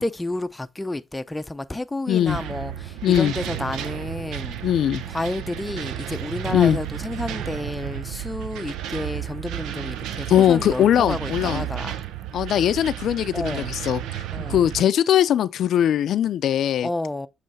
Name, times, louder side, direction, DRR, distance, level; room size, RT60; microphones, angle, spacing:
voice 1, 0.0-4.6 5.1-12.0 13.3-13.7 14.3-14.6 16.8-17.3, left 2 dB, 10° left, 0.6 m, -30 dB
voice 2, 2.1-2.4 3.0-3.3 4.6-5.0 6.5-6.8 10.3-11.6 12.3-14.2 14.5-16.9, left 10 dB, 70° left, 0.4 m, -20 dB
sound 1, 2.3-14.8, right 11 dB, 90° right, 0.6 m, -32 dB
7.7 x 3.1 x 4.1 m
cardioid pair, 90°, 0 cm